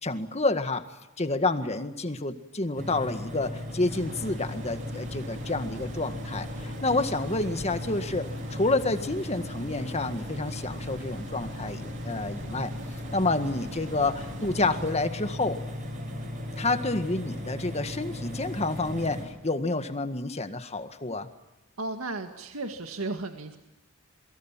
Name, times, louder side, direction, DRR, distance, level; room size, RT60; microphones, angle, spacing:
voice 1, 0.0-0.9 1.2-12.7 13.1-15.6 16.6-21.3, left 2 dB, 30° left, 8 dB, 1.8 m, -29 dB
sound 1, 2.8-19.2, left 1 dB, 40° right, 7.7 m, -37 dB
sound 2, 3.9-14.9, equal, 60° right, 3.0 m, -44 dB
voice 2, 21.8-23.6, right 2 dB, 80° right, 5 dB, 2.0 m, -34 dB
28.0 x 23.0 x 7.5 m, 0.95 s
head